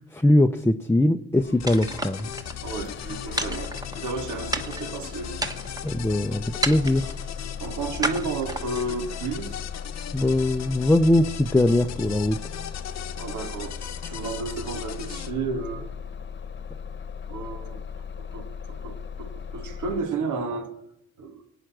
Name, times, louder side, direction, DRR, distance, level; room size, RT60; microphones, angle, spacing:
voice 1, 0.1-2.3 5.8-7.1 10.1-12.4, left 1 dB, 10° left, 0.6 m, -21 dB
Bus / Engine starting, 1.3-20.0, left 6 dB, 35° left, 1.1 m, -38 dB
sound 1, 1.6-15.3, left 9 dB, 60° left, 0.9 m, -38 dB
sound 2, 1.7-2.6 3.4-4.2 4.5-5.0 5.4-5.9 6.6-7.2 8.0-8.9, right 2 dB, 10° right, 1.2 m, -31 dB
voice 2, 2.6-5.4 7.6-9.6 13.2-15.9 17.3-17.8 18.2-20.7 21.2-21.4, right 4 dB, 80° right, 1.9 m, -32 dB
21.5 x 9.1 x 6.0 m
cardioid pair, 90°, 30 cm